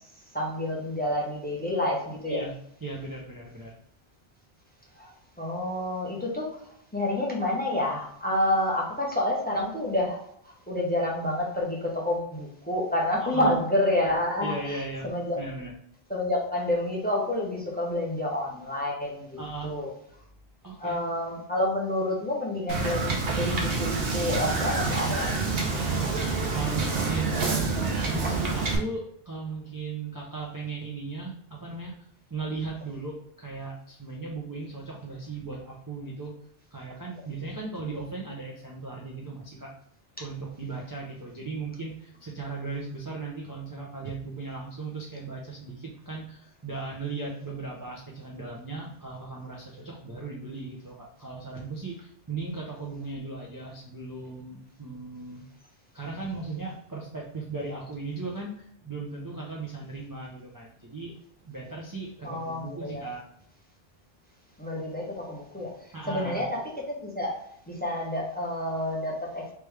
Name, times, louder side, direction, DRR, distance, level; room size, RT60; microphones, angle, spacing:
voice 1, 0.3-2.4 4.9-15.4 16.1-19.9 20.8-25.4 62.2-63.0 64.6-69.5, left 1 dB, 10° left, -2 dB, 0.8 m, -29 dB
voice 2, 2.8-3.7 13.3-13.5 14.4-15.1 15.4-15.7 19.4-19.7 20.6-21.0 25.7-27.6 28.1-36.3 36.7-39.7 40.2-55.4 55.9-61.1 61.5-63.2 65.9-66.4, right 3 dB, 25° right, -3 dB, 0.5 m, -37 dB
Wind / Boat Water vehicle, 22.7-28.8, right 4 dB, 65° right, 1.0 m, -27 dB
3.3 x 3.3 x 3.2 m, 0.70 s
omnidirectional pair, 1.1 m